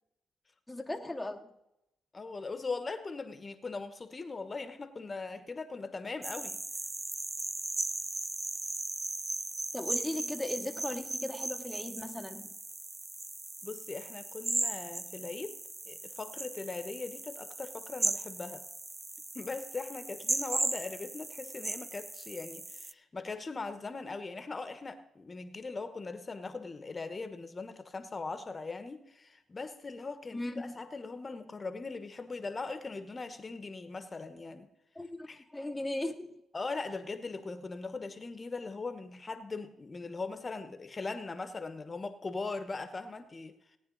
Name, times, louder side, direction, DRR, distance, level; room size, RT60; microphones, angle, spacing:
voice 1, 0.7-1.5 9.7-12.6 30.3-30.7 34.9-35.3 35.5-36.4, left 1 dB, 5° left, 1 dB, 1.0 m, -37 dB
voice 2, 2.1-6.6 13.6-15.5 15.9-18.6 19.3-34.7 35.3-35.4 36.5-43.6, left 3 dB, 30° left, 9 dB, 1.1 m, -40 dB
sound 1, 6.2-22.9, right 2 dB, 20° right, 0.3 m, -37 dB
18.5 x 9.3 x 4.0 m, 0.86 s
cardioid pair, 90°, 0 cm